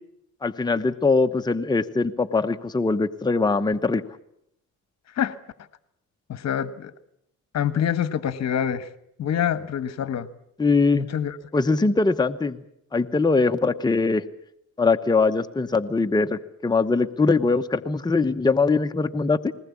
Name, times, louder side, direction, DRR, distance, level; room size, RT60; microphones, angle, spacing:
voice 1, 0.4-4.0 10.6-11.1 11.5-12.6 12.9-14.2 14.8-19.5, left 3 dB, 15° left, 7 dB, 1.0 m, -22 dB
voice 2, 6.3-6.9 7.5-8.9 9.2-10.3 10.9-11.4, left 9 dB, 60° left, 14 dB, 1.4 m, -26 dB
20.5 x 19.0 x 8.4 m, 0.76 s
cardioid pair, 90°, 30 cm